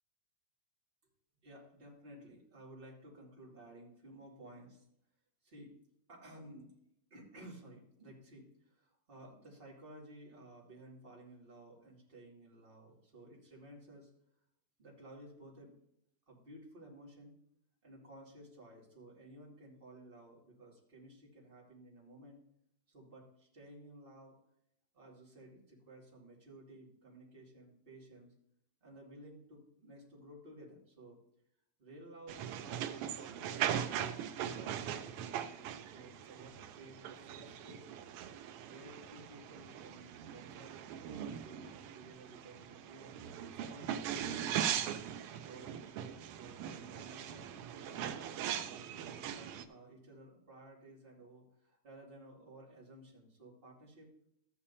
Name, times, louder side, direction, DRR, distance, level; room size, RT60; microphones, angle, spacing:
voice 1, 1.4-4.8 5.4-5.7 6.1-6.7 7.1-14.1 14.8-15.7 16.3-17.4 17.8-22.4 22.9-24.4 24.9-28.3 28.8-31.2 31.8-33.7 34.3-37.8 38.5-43.1 43.5-44.8 45.4-48.0 48.5-54.1, right 1 dB, 20° right, -4 dB, 2.5 m, -55 dB
train in miranda de ebro (spain) leaving, 32.3-49.6, right 9 dB, 85° right, 1.3 m, -40 dB
14.0 x 8.5 x 2.8 m, 0.73 s
omnidirectional pair, 3.3 m